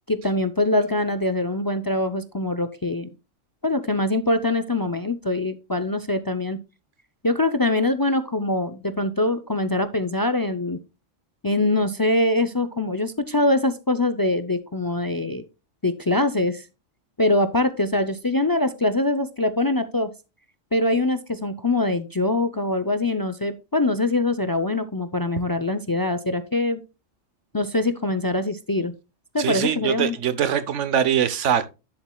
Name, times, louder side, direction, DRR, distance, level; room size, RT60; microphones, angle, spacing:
voice 1, 0.1-3.1 3.6-6.6 7.2-10.8 11.4-15.4 15.8-16.6 17.2-20.1 20.7-26.8 27.5-28.9 29.3-30.1, left 2 dB, 35° left, 0.3 m, -23 dB
voice 2, 29.4-31.7, right 9 dB, 75° right, 1.2 m, -23 dB
10.5 x 7.3 x 2.2 m
omnidirectional pair, 1.3 m